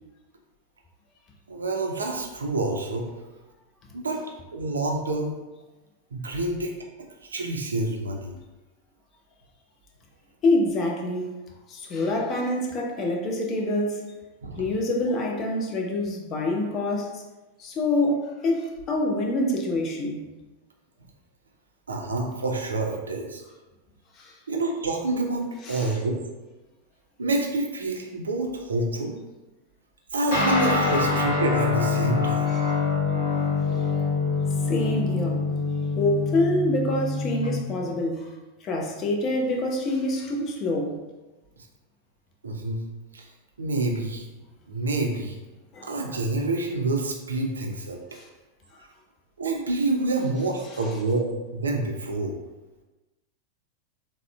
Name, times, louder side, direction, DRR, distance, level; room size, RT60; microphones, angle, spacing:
voice 1, 1.5-3.1 3.9-4.2 4.5-5.4 6.1-6.7 7.2-8.4 14.4-14.6 21.9-23.4 24.5-26.2 27.2-29.2 30.1-32.6 42.4-42.8 43.1-43.3 43.6-44.2 44.7-45.4 45.8-48.0 49.4-52.3, right 2 dB, 70° right, 1 dB, 0.4 m, -27 dB
voice 2, 10.4-11.3 11.7-14.0 14.5-17.2 17.6-20.2 24.1-24.3 25.7-25.9 32.5-32.6 33.6-33.9 34.7-35.5 36.0-38.3 38.6-40.9 45.7-45.9 48.1-48.2, left 1 dB, 30° left, 1 dB, 0.5 m, -26 dB
Guitar, 30.3-38.0, left 4 dB, 65° left, 0.9 m, -25 dB
3.5 x 2.0 x 2.2 m, 1.1 s
figure-of-eight pair, 90°, 0 cm